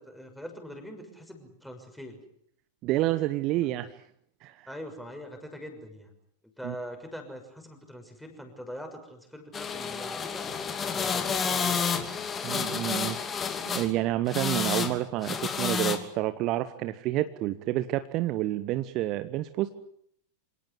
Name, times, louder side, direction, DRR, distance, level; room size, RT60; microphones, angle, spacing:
voice 1, 0.0-2.2 4.7-6.1 6.6-10.5 10.9-11.8, equal, ahead, 4 dB, 6.3 m, -42 dB
voice 2, 2.8-3.9 4.4-4.7 6.6-6.7 12.4-13.4 13.7-19.7, right 15 dB, 40° right, 12 dB, 1.2 m, -29 dB
sound 1, 9.5-13.9 14.3-15.0 15.2-16.0, left 6 dB, 20° left, 2.8 m, -30 dB
27.0 x 18.5 x 9.7 m, 0.70 s
figure-of-eight pair, 90°, 0 cm